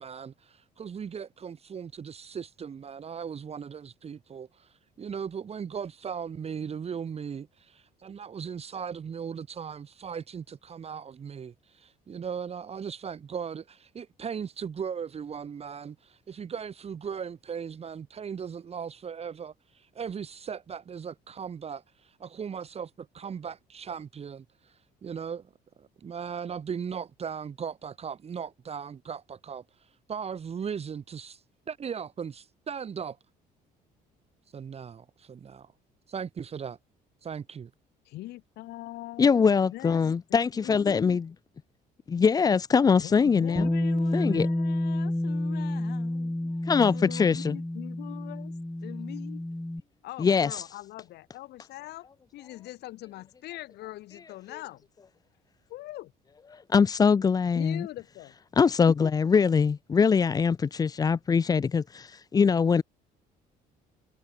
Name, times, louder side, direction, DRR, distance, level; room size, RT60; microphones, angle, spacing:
voice 1, 0.0-25.5 25.8-33.2 34.5-35.7 36.1-36.8 37.2-37.7, right 7 dB, 35° right, 2.2 m, -38 dB
voice 2, 38.1-41.2 43.0-48.5 48.8-49.5 50.0-52.1 52.3-54.8 55.7-56.1 57.5-58.3, left 16 dB, 75° left, 1.7 m, -42 dB
voice 3, 39.2-41.3 42.1-43.7 44.1-44.5 46.7-47.6 50.2-50.5 56.7-57.9 58.6-62.8, left 5 dB, 20° left, 0.4 m, -23 dB
Bass guitar, 43.6-49.8, left 1 dB, 5° left, 1.1 m, -29 dB
cardioid pair, 110°, 17 cm